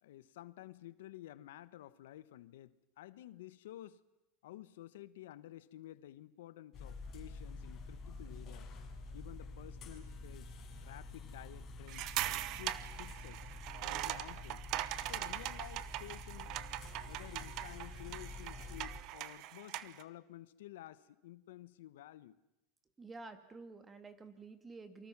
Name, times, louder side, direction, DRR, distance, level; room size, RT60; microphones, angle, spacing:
voice 1, 0.0-4.0 4.4-8.7 9.1-10.5 10.8-13.5 13.8-14.6 15.1-16.6 17.0-22.4, left 14 dB, 85° left, 16 dB, 1.0 m, -52 dB
sound 1, 6.7-19.0, left 2 dB, 35° left, 6.4 m, -48 dB
sound 2, 11.9-20.0, right 15 dB, 50° right, 1.0 m, -41 dB
voice 2, 23.0-25.1, right 3 dB, 15° right, 9 dB, 2.4 m, -50 dB
28.0 x 24.5 x 6.1 m, 0.90 s
supercardioid pair, 135°, 0 cm